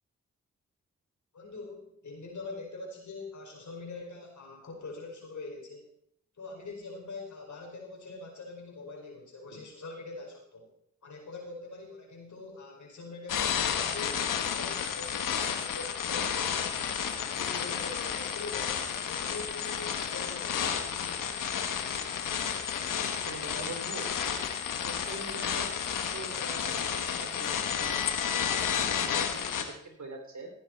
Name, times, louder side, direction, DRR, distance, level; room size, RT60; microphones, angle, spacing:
voice 1, 1.3-5.8 6.4-10.7 11.0-14.2 14.5-20.9, left 3 dB, 65° left, 1 dB, 5.0 m, -43 dB
sound 1, 13.3-29.6, left 8 dB, 85° left, 1.4 m, -31 dB
voice 2, 23.1-24.5 24.8-28.0 28.4-30.5, right 2 dB, 65° right, 3 dB, 4.2 m, -44 dB
17.5 x 9.4 x 4.5 m, 0.70 s
supercardioid pair, 45°, 31 cm